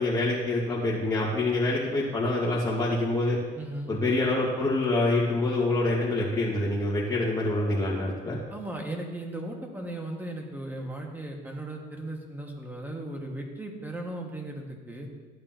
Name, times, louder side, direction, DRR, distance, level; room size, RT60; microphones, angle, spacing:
voice 1, 0.0-3.4 3.9-8.4, left 2 dB, 20° left, -6 dB, 2.0 m, -26 dB
voice 2, 3.5-3.9 8.5-15.1, right 1 dB, 10° right, 1 dB, 1.8 m, -37 dB
15.0 x 8.7 x 3.0 m, 1.4 s
cardioid pair, 110°, 17 cm